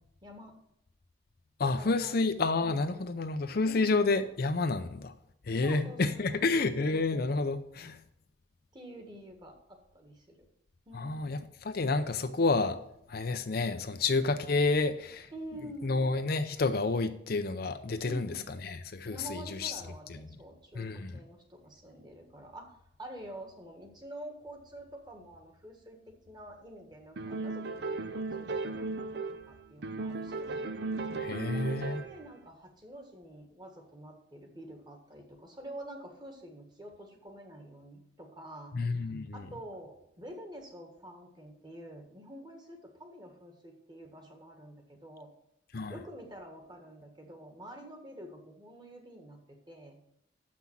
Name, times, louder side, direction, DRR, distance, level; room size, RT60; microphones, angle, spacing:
voice 1, 0.2-0.5 1.6-2.2 3.6-3.9 5.6-6.4 8.7-10.5 10.9-11.4 15.3-16.0 18.0-18.5 19.1-22.7 23.0-30.7 31.3-45.3 45.9-50.0, right 1 dB, 25° right, 1.7 m, -48 dB
voice 2, 1.6-5.1 5.5-8.0 10.9-12.8 13.1-15.3 15.8-19.8 20.1-20.2 20.7-21.2 31.2-32.0 38.7-39.4 45.7-45.9, left 3 dB, 55° left, 0.6 m, -30 dB
sound 1, 27.2-29.5 29.8-32.3, right 3 dB, 60° right, 0.6 m, -36 dB
7.3 x 5.9 x 7.2 m
head